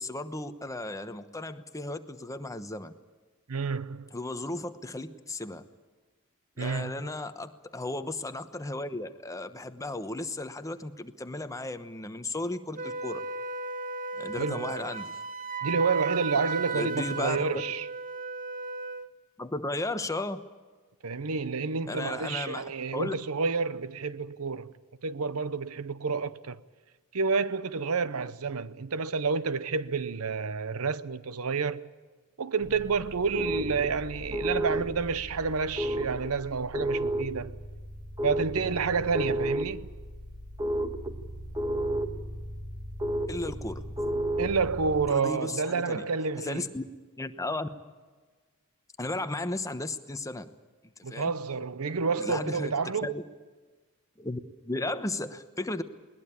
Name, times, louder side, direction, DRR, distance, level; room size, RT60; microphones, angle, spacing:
voice 1, 0.0-2.9 4.1-5.7 6.6-13.2 14.2-15.2 16.7-17.6 19.4-20.4 21.9-23.1 43.3-43.9 45.1-46.0 46.4-46.8 47.2-47.7 49.0-50.5 51.1-51.3 52.2-52.7 53.0-53.2 54.2-54.4 54.6-55.8, left 2 dB, 15° left, 1.0 m, -35 dB
voice 2, 3.5-4.1 6.6-7.0 14.4-14.6 15.6-17.8 21.0-24.7 25.0-26.6 27.1-31.9 32.4-37.6 38.2-39.9 44.4-46.7 51.0-53.1, right 5 dB, 70° right, 0.8 m, -29 dB
Wind instrument woodwind instrument, 12.8-19.1, right 4 dB, 35° right, 0.9 m, -35 dB
sound 1, 32.6-45.1, right 1 dB, 20° right, 1.5 m, -33 dB
21.0 x 20.0 x 8.6 m
head